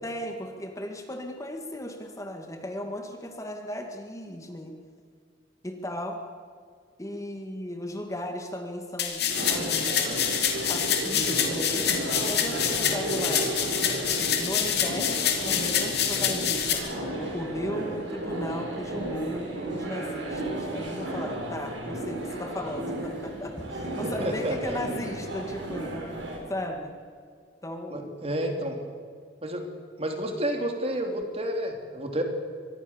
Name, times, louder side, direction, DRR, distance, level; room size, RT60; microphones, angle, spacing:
voice 1, 0.0-4.7 5.6-6.2 7.0-10.3 10.7-13.5 14.4-16.8 17.2-25.9 26.5-26.9 27.6-28.1, left 1 dB, 15° left, 4 dB, 2.1 m, -36 dB
sound 1, 9.0-16.7, left 8 dB, 60° left, 3.4 m, -26 dB
sound 2, 9.3-26.4, right 1 dB, 85° right, 7.0 m, -33 dB
voice 2, 24.0-24.8 27.9-28.8 29.4-29.6 30.0-32.2, right 1 dB, 35° right, 4 dB, 3.1 m, -30 dB
25.5 x 20.5 x 7.3 m, 2.1 s
head